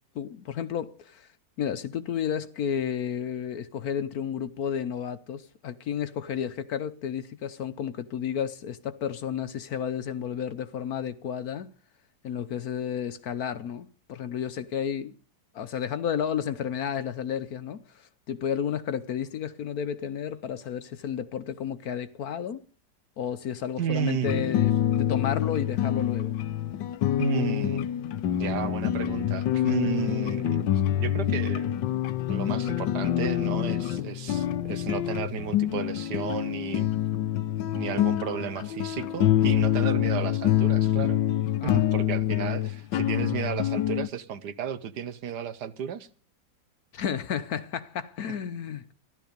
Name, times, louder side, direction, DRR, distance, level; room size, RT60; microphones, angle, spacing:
voice 1, 0.1-1.3 1.6-11.7 12.2-15.1 15.5-22.6 23.2-26.4 41.6-41.8 46.9-48.9, left 8 dB, 60° left, 1.2 m, -32 dB
voice 2, 23.8-24.6 27.2-27.8 28.4-30.6 31.0-31.8 32.3-36.9 37.7-41.2 41.6-46.1, right 8 dB, 65° right, 1.5 m, -33 dB
sound 1, 24.2-44.1, left 11 dB, 80° left, 1.5 m, -26 dB
14.5 x 12.0 x 5.2 m
omnidirectional pair, 1.9 m